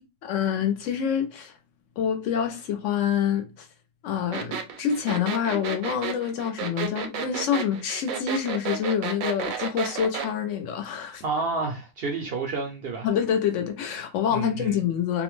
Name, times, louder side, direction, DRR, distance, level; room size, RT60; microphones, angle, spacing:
voice 1, 0.2-1.5 2.0-3.7 4.0-11.2 13.0-15.2, left 8 dB, 70° left, 0.9 m, -27 dB
sound 1, 4.3-10.3, right 7 dB, 80° right, 1.0 m, -31 dB
voice 2, 11.2-13.1 14.3-14.8, right 3 dB, 60° right, 0.6 m, -30 dB
2.4 x 2.1 x 3.1 m
omnidirectional pair, 1.4 m